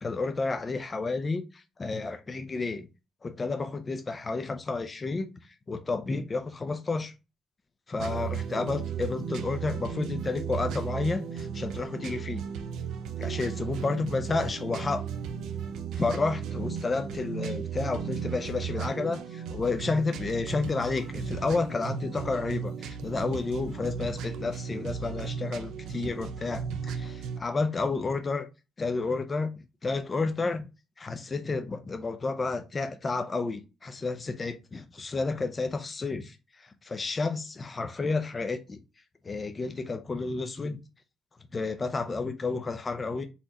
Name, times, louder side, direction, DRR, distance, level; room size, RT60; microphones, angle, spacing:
voice 1, 0.0-2.9 3.2-5.3 5.7-7.1 7.9-12.4 13.2-15.0 15.9-28.5 28.8-29.5 29.8-30.7 31.0-38.8 39.2-40.8 41.5-43.3, left 3 dB, 30° left, 0.5 m, -31 dB
sound 1, 8.0-27.4, right 7 dB, 80° right, 0.7 m, -35 dB
4.2 x 3.8 x 2.9 m
cardioid pair, 115°, 0 cm